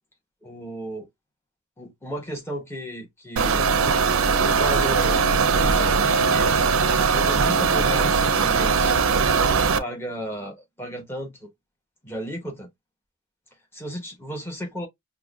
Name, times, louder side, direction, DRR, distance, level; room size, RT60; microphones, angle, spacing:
voice 1, 0.4-1.1 1.8-3.7 4.4-6.7 7.1-9.0 9.8-11.5 12.0-12.7 13.7-14.9, equal, 10° left, 1.1 m, -34 dB
sound 1, 3.4-9.8, right 5 dB, 85° right, 0.5 m, -20 dB
5.8 x 2.2 x 2.2 m
head